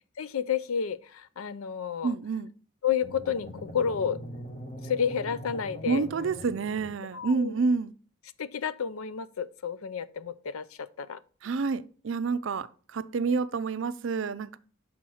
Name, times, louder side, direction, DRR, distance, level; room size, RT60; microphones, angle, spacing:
voice 1, 0.2-2.1 2.8-4.2 4.8-6.0 7.1-7.6 8.4-11.2, left 7 dB, 90° left, 0.5 m, -31 dB
voice 2, 2.0-2.5 5.9-7.9 11.4-14.6, right 4 dB, 65° right, 0.4 m, -28 dB
sound 1, 3.0-7.3, equal, 40° left, 1.4 m, -42 dB
5.7 x 4.2 x 6.2 m
head